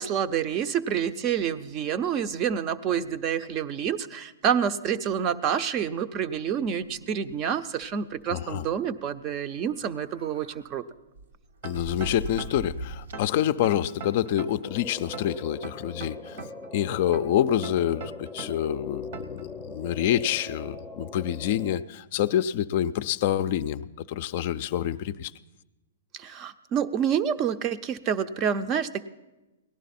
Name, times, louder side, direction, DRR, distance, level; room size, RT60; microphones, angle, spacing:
voice 1, 0.0-10.8 26.2-29.1, right 8 dB, 30° right, 12 dB, 0.5 m, -28 dB
sound 1, 6.5-7.5 7.8-7.9 8.2-8.4 9.6-10.6 11.1-13.4, right 1 dB, 80° right, 0.9 m, -40 dB
voice 2, 8.3-8.7 11.6-16.4 16.7-25.3, left 11 dB, 50° left, 13 dB, 0.4 m, -27 dB
sound 2, 11.6-12.7 13.1-14.7 15.1-16.7 17.1-18.7 19.1-19.4, right 4 dB, 55° right, 0.9 m, -40 dB
sound 3, 14.6-21.8, left 3 dB, 10° left, 0.6 m, -41 dB
17.5 x 11.0 x 4.2 m, 1.1 s
hypercardioid pair, 130°, 0 cm